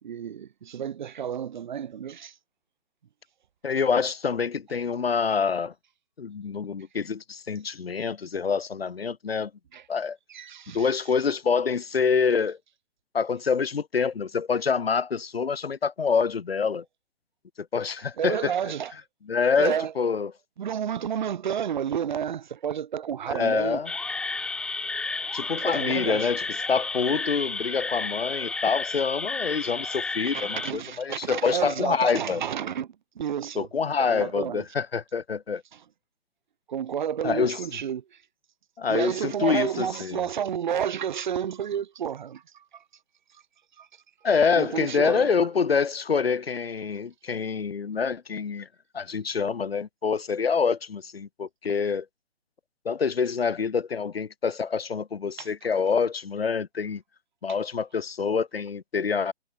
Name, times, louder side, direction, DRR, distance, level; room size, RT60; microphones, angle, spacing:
voice 1, 0.0-2.3 9.7-9.8 10.3-10.9 18.2-18.9 19.6-19.9 20.6-23.8 25.6-26.3 30.3-33.7 34.0-34.6 35.7-35.8 36.7-38.2 38.9-42.8 43.8-43.9 44.6-45.3 55.4-55.5, right 8 dB, 40° right, 4.8 m, -31 dB
voice 2, 3.6-5.7 6.2-9.5 9.9-10.2 10.7-12.6 13.1-16.8 17.6-18.5 19.3-20.3 23.3-23.9 25.3-26.4 26.7-32.4 33.6-35.6 37.2-37.6 38.8-40.2 44.2-48.7 48.9-52.1 52.8-57.0 57.4-59.3, left 5 dB, 55° left, 2.3 m, -26 dB
sound 1, 23.9-30.7, left 3 dB, 5° left, 1.3 m, -32 dB
figure-of-eight pair, 140°, 35 cm